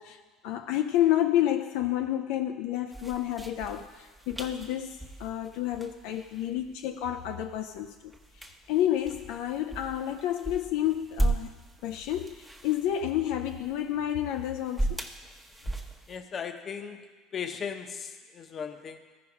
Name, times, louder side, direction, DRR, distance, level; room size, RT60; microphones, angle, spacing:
voice 1, 0.0-11.5 11.8-15.0, left 12 dB, 75° left, 5 dB, 0.4 m, -30 dB
sound 1, 2.9-16.2, right 2 dB, 5° right, 1.0 m, -37 dB
voice 2, 16.1-17.0 17.3-19.0, left 7 dB, 40° left, 7 dB, 0.8 m, -37 dB
14.0 x 5.1 x 4.9 m, 1.4 s
supercardioid pair, 95°, 0 cm